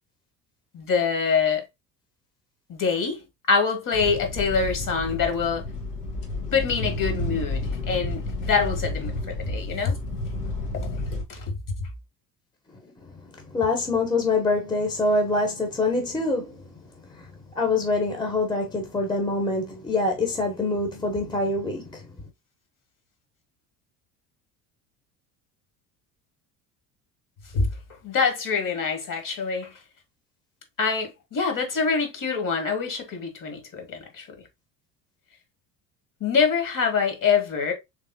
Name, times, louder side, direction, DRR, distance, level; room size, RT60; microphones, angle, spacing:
voice 1, 0.7-1.6 2.7-3.2 3.5-5.6 6.5-10.0 10.7-10.9 11.3-11.6 27.5-27.7 28.0-29.7 30.8-34.3 36.2-37.7, left 5 dB, 40° left, 1.6 m, -25 dB
sound 1, 3.9-11.2, left 2 dB, 75° left, 1.4 m, -31 dB
voice 2, 13.4-16.6 17.1-17.3 17.5-22.0, left 2 dB, 10° left, 1.0 m, -25 dB
3.5 x 3.4 x 2.7 m
figure-of-eight pair, 60°, 48 cm